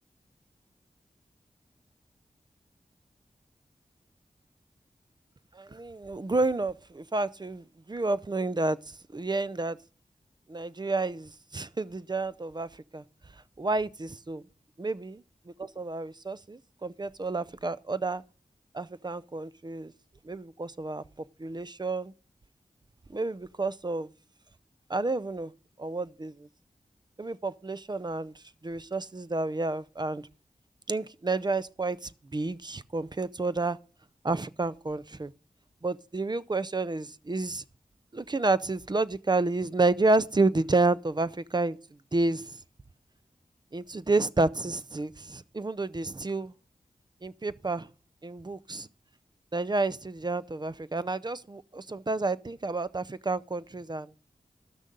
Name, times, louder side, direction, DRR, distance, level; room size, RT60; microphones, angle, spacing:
voice 1, 5.5-8.8 9.1-9.8 10.5-13.0 13.6-14.4 14.8-15.2 15.6-18.2 18.7-19.9 20.2-21.0 21.4-22.1 23.1-24.1 24.9-25.5 25.8-26.5 27.2-28.3 28.6-30.2 30.9-33.8 34.2-35.3 35.8-37.6 38.1-41.8 42.1-42.6 43.7-46.5 47.2-47.9 48.2-48.9 49.5-54.1, right 3 dB, 30° right, 0.6 m, -30 dB
12.5 x 6.3 x 5.2 m
cardioid pair, 40°, 14 cm